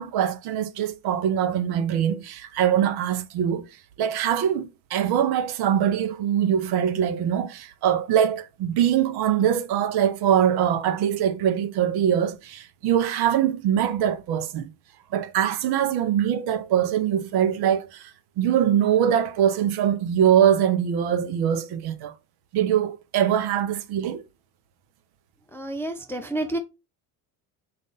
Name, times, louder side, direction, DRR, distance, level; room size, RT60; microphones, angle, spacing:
voice 1, 0.0-3.6 4.0-14.7 15.1-18.1 18.4-22.1 22.5-24.2, right 9 dB, 55° right, 0.7 m, -23 dB
voice 2, 25.5-26.6, right 1 dB, 5° left, 0.3 m, -29 dB
4.2 x 2.4 x 3.7 m
hypercardioid pair, 60°, 46 cm